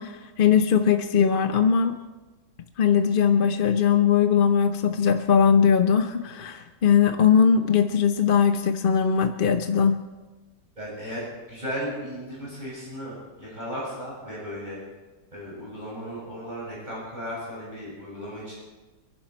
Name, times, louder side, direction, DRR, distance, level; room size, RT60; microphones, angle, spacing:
voice 1, 0.0-1.9 2.8-10.0, left 7 dB, 45° left, 7 dB, 0.7 m, -20 dB
voice 2, 10.8-14.8 15.3-18.6, equal, 25° right, -7 dB, 7.1 m, -35 dB
28.5 x 11.5 x 4.5 m, 1.2 s
omnidirectional pair, 1.8 m